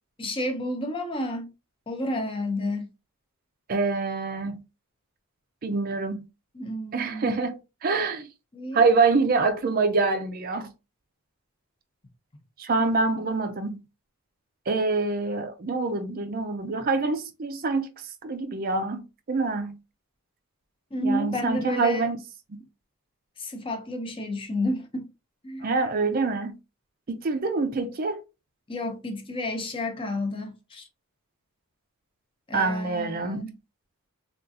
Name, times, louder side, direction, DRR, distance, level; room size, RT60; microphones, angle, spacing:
voice 1, 0.2-1.5 1.9-2.9 6.5-7.3 8.5-8.8 20.9-22.1 23.4-25.1 25.4-25.7 28.7-30.8 32.5-33.5, left 1 dB, 25° left, 0.5 m, -31 dB
voice 2, 3.7-4.6 5.6-6.2 6.9-8.3 8.7-10.7 12.6-13.8 14.7-17.9 18.2-19.8 21.0-22.2 25.6-26.5 27.1-28.2 32.5-33.5, right 3 dB, 40° right, 0.4 m, -25 dB
3.6 x 2.4 x 2.6 m
head